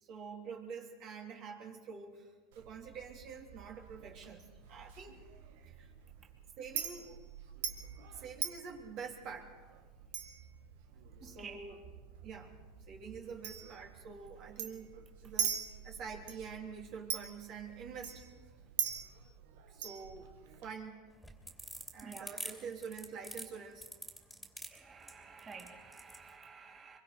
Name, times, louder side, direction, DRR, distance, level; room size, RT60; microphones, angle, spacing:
voice 1, 0.0-5.1 5.8-5.9 6.6-7.1 8.1-9.5 11.2-11.8 12.2-12.6 12.9-14.9 15.2-15.6 15.8-18.2 19.7-20.3 20.6-21.1 21.9-23.9, right 6 dB, 50° right, 1 dB, 3.3 m, -46 dB
Chink clink, 2.5-20.7, right 9 dB, 75° right, 1.8 m, -43 dB
voice 2, 11.2-11.7 22.0-22.4 24.7-27.0, right 5 dB, 25° right, 0 dB, 3.0 m, -51 dB
sound 1, 21.1-26.2, equal, ahead, 2.9 m, -46 dB
24.5 x 22.5 x 5.2 m, 1.4 s
hypercardioid pair, 100°, 0 cm